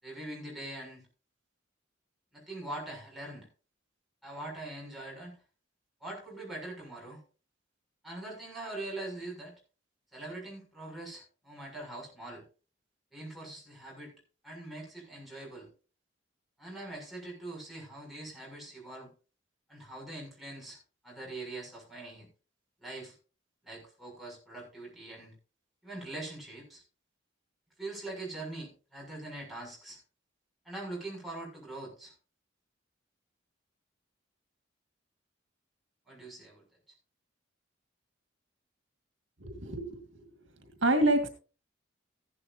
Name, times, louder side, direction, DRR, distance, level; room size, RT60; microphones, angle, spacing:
voice 1, 0.0-1.0 2.3-3.5 4.2-5.4 6.0-7.2 8.0-9.5 10.1-12.4 13.1-14.1 14.4-15.7 16.6-19.1 19.7-22.3 22.8-23.2 23.6-25.3 25.8-26.8 27.8-30.0 30.6-32.1 36.1-36.6, right 2 dB, ahead, -4 dB, 6.9 m, -43 dB
voice 2, 39.4-40.0 40.8-41.3, right 1 dB, 75° right, 7 dB, 1.9 m, -26 dB
15.5 x 11.5 x 2.7 m, 0.35 s
head